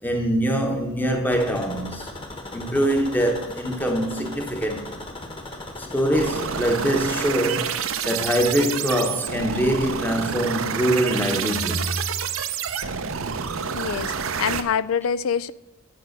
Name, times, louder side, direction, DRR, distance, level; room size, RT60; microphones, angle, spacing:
voice 1, 0.0-2.2 2.5-5.0 5.8-12.1, equal, 10° left, 0.9 m, -24 dB
sound 1, 1.3-7.3, left 2 dB, 25° left, 1.2 m, -38 dB
sound 2, 6.1-14.6, right 7 dB, 75° right, 0.7 m, -28 dB
voice 2, 13.7-14.1 14.4-15.5, left 7 dB, 80° left, 0.4 m, -25 dB
9.2 x 6.8 x 6.5 m
head